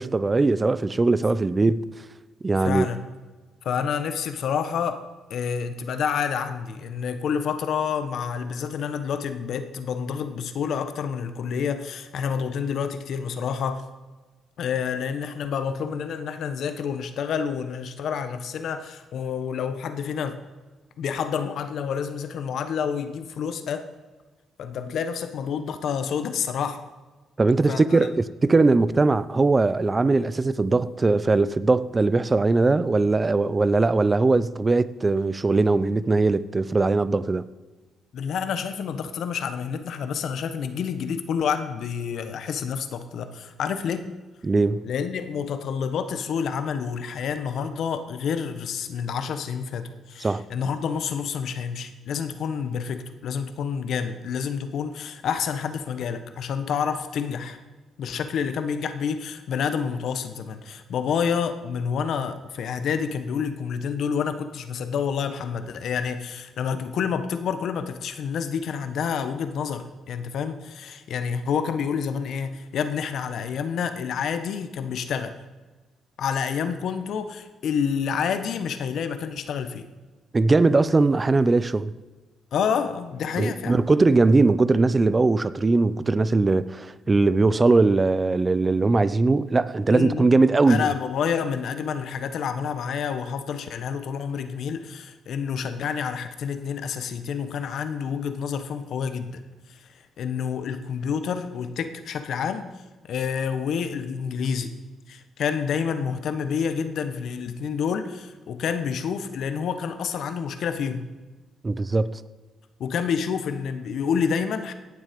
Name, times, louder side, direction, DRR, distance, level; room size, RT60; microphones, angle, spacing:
voice 1, 0.0-1.8 2.4-2.9 27.4-37.4 44.4-44.8 50.2-50.4 80.3-81.9 83.4-90.9 111.6-112.2, right 3 dB, 25° right, 0.6 m, -20 dB
voice 2, 2.6-3.0 3.6-5.0 5.3-13.8 14.6-20.4 21.0-23.9 24.6-26.8 27.7-28.0 38.1-44.1 44.8-57.6 58.0-75.4 76.2-79.9 82.5-83.8 89.9-90.3 90.7-99.4 99.7-102.7 103.0-104.7 105.1-111.1 112.8-114.7, left 7 dB, 70° left, 1.2 m, -28 dB
17.5 x 7.3 x 5.3 m
cardioid pair, 90°, 0 cm